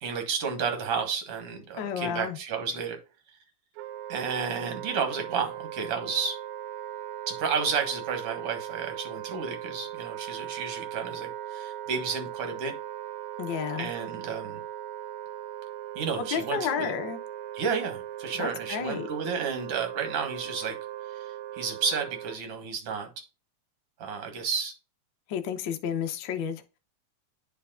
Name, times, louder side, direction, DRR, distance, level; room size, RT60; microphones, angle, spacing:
voice 1, 0.0-3.0 4.1-6.4 7.3-12.7 13.8-14.6 16.0-16.9 17.5-20.7 21.5-23.1 24.0-24.7, right 6 dB, 55° right, 2.2 m, -31 dB
voice 2, 1.8-2.4 13.4-13.9 16.2-17.2 18.3-19.1 25.3-26.8, left 7 dB, 75° left, 1.1 m, -31 dB
Wind instrument woodwind instrument, 3.8-22.4, right 12 dB, 80° right, 2.0 m, -39 dB
10.0 x 4.6 x 2.5 m
omnidirectional pair, 3.3 m